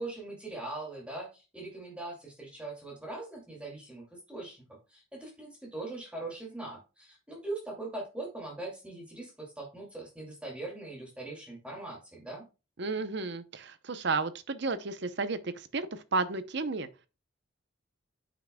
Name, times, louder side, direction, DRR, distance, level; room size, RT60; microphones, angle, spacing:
voice 1, 0.0-12.4, right 2 dB, 5° right, 2.3 m, -41 dB
voice 2, 12.8-16.9, right 3 dB, 55° right, 0.7 m, -32 dB
9.5 x 6.0 x 2.2 m
head